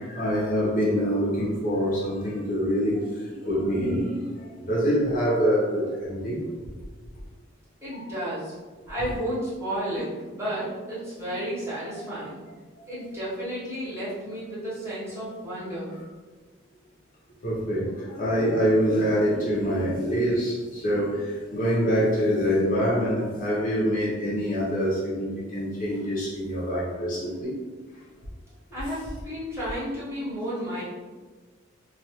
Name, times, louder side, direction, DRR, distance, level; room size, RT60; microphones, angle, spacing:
voice 1, 0.0-6.4 7.9-8.0 9.9-10.0 11.3-11.4 11.9-12.1 12.7-12.8 17.4-27.5, equal, 40° left, -6 dB, 0.6 m, -25 dB
voice 2, 7.8-8.5 8.9-12.4 12.9-15.9 28.7-30.8, equal, 15° right, -10 dB, 0.9 m, -32 dB
2.3 x 2.3 x 2.7 m, 1.4 s
head